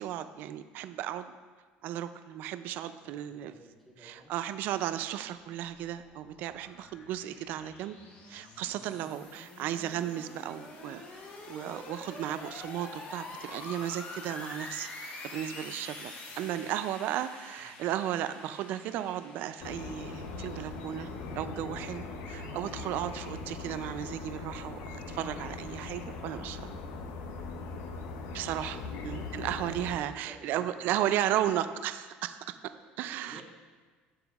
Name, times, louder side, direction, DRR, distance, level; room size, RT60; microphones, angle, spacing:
voice 1, 0.0-1.3 1.8-3.5 4.0-8.0 8.3-11.2 11.5-14.9 15.2-21.1 21.4-26.7 28.3-28.8 29.0-32.6 33.0-33.4, right 11 dB, 60° right, 11 dB, 0.3 m, -35 dB
voice 2, 3.0-4.4 15.9-16.7 17.6-17.8 27.8-28.2 28.6-29.4 30.0-31.5 32.7-32.8 33.3-33.4, right 1 dB, 10° left, -4 dB, 1.9 m, -55 dB
sound 1, 5.3-21.4, left 3 dB, 40° left, 1.0 m, -47 dB
sound 2, 19.6-30.0, left 3 dB, 80° left, 0.7 m, -40 dB
10.5 x 7.0 x 2.4 m, 1.4 s
cardioid pair, 145°, 4 cm